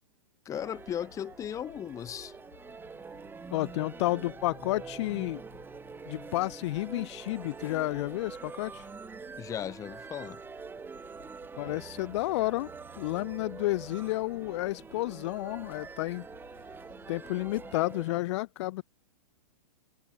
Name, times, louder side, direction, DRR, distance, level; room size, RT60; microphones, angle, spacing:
voice 1, 0.4-2.3 9.4-10.4, left 9 dB, 15° left, 0.8 m, -36 dB
sound 1, 0.5-17.8, left 9 dB, 80° left, 5.8 m, -58 dB
sound 2, 0.5-18.2, right 5 dB, 10° right, 1.7 m, -45 dB
voice 2, 3.5-5.4 6.1-8.9 11.6-12.7 13.0-16.3 17.1-18.8, left 19 dB, 50° left, 0.6 m, -31 dB
Bass guitar, 11.7-15.1, right 24 dB, 50° right, 5.6 m, -57 dB
hypercardioid pair, 135°, 19 cm